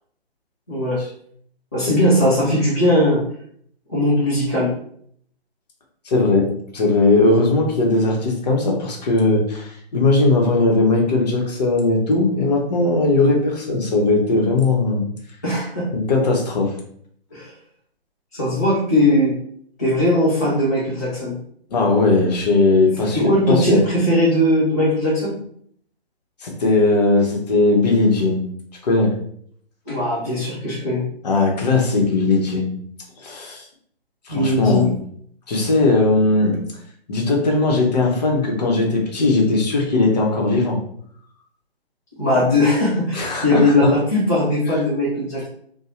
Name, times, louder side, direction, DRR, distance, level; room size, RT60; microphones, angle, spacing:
voice 1, 0.7-1.0 1.7-3.2 3.9-4.7 15.4-15.9 17.3-17.5 18.3-19.4 19.8-21.4 23.1-25.4 29.9-31.1 34.3-34.9 42.2-45.5, left 1 dB, 20° left, -9 dB, 0.3 m, -19 dB
voice 2, 6.1-15.1 15.9-16.8 21.7-23.8 26.4-28.5 28.8-29.1 31.2-32.7 33.2-33.6 34.3-34.9 35.5-36.6 37.1-40.8 43.1-43.9, left 3 dB, 40° left, 0 dB, 0.7 m, -18 dB
2.6 x 2.0 x 3.0 m, 0.64 s
figure-of-eight pair, 135°, 31 cm